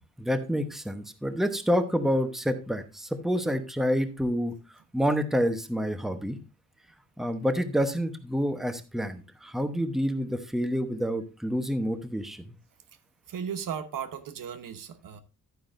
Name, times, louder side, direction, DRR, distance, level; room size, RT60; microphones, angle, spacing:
voice 1, 0.2-4.5 4.9-6.4 7.2-12.5, equal, ahead, 0.9 m, -28 dB
voice 2, 13.3-15.2, right 8 dB, 80° right, 1.0 m, -36 dB
11.0 x 9.3 x 2.6 m
wide cardioid pair, 135°, 33 cm